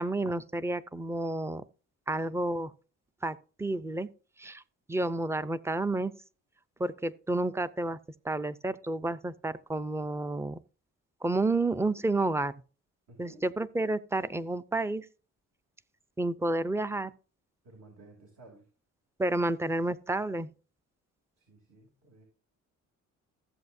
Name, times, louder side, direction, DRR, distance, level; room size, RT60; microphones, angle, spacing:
voice 1, 0.0-1.6 2.1-2.7 3.2-4.1 4.4-4.6 4.9-6.1 6.8-8.0 8.2-10.6 11.2-12.5 13.2-15.1 16.2-17.1 19.2-20.5, right 2 dB, 10° right, 0.5 m, -30 dB
voice 2, 13.1-13.4 17.6-18.7 21.4-22.2, right 2 dB, 60° right, 3.0 m, -54 dB
14.5 x 7.8 x 2.7 m
cardioid pair, 90°, 30 cm